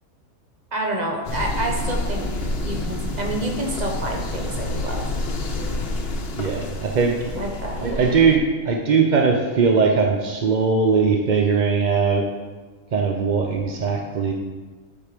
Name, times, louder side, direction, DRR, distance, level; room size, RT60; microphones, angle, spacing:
voice 1, 0.7-2.3 2.6-5.1 7.3-7.8, right 1 dB, 30° right, 1 dB, 1.1 m, -28 dB
sound 1, 1.2-8.4, left 2 dB, 50° left, 1.0 m, -28 dB
voice 2, 6.4-7.2 7.8-12.2 12.9-14.3, right 5 dB, 50° right, 1 dB, 0.5 m, -20 dB
8.6 x 4.7 x 5.1 m, 1.4 s
omnidirectional pair, 1.5 m